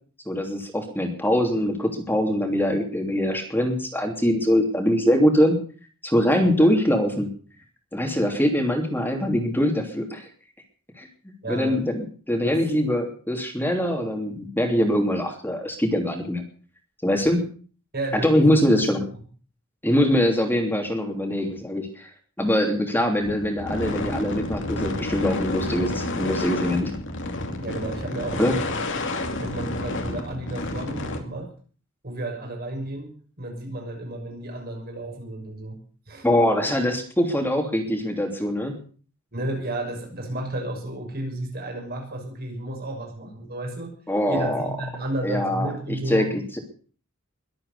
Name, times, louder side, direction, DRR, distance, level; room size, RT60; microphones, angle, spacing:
voice 1, 0.3-5.5 6.0-7.3 7.9-10.3 11.0-11.1 11.5-16.4 17.0-17.5 18.2-19.1 19.8-22.1 22.4-26.9 28.4-28.5 36.2-38.8 44.1-44.6 45.2-45.7 46.1-46.6, equal, 10° left, 3 dB, 3.0 m, -23 dB
voice 2, 11.4-11.8 12.4-12.6 17.9-18.9 27.6-29.1 29.4-31.5 32.0-35.8 36.1-36.3 39.3-43.9 44.3-46.3, right 1 dB, 50° right, 2 dB, 6.5 m, -32 dB
sound 1, 23.2-31.2, left 2 dB, 65° left, 2.7 m, -30 dB
22.5 x 8.7 x 6.8 m, 0.42 s
head